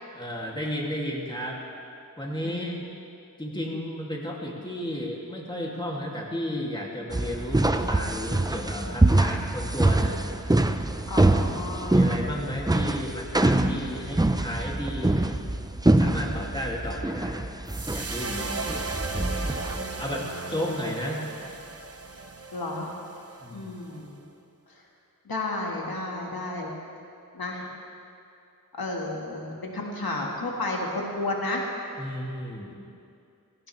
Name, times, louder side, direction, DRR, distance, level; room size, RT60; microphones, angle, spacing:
voice 1, 0.1-1.6 2.2-2.8 3.4-10.2 11.9-15.2 15.9-17.5 17.9-18.6 20.0-21.3 23.4-23.7 32.0-32.8, equal, 15° left, -3 dB, 2.4 m, -33 dB
sound 1, 7.1-19.8, right 2 dB, 10° right, 0.6 m, -24 dB
voice 2, 11.1-12.1 19.4-20.6 22.5-22.9 23.5-24.2 25.3-26.7 27.3-27.7 28.8-31.6, left 2 dB, 90° left, -1 dB, 1.8 m, -32 dB
sound 2, 17.7-24.0, right 3 dB, 45° right, 1.0 m, -36 dB
18.0 x 17.0 x 3.3 m, 2.5 s
wide cardioid pair, 60°, 35 cm